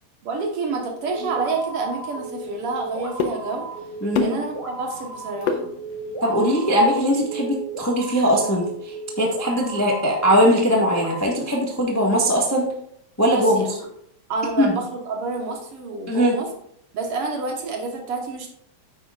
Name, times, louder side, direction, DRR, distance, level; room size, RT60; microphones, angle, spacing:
voice 1, 0.2-3.7 4.2-5.7 13.3-13.9 14.3-16.5 16.9-18.5, right 3 dB, 60° right, 2 dB, 1.9 m, -28 dB
sound 1, 1.0-11.2, right 2 dB, 10° right, 2.4 m, -35 dB
sound 2, 1.2-6.3, left 6 dB, 70° left, 1.9 m, -32 dB
voice 2, 4.0-4.4 6.2-12.7 13.2-13.6 14.6-14.8 16.1-16.4, equal, 20° left, -1 dB, 0.4 m, -20 dB
9.6 x 9.4 x 2.4 m, 0.70 s
omnidirectional pair, 3.3 m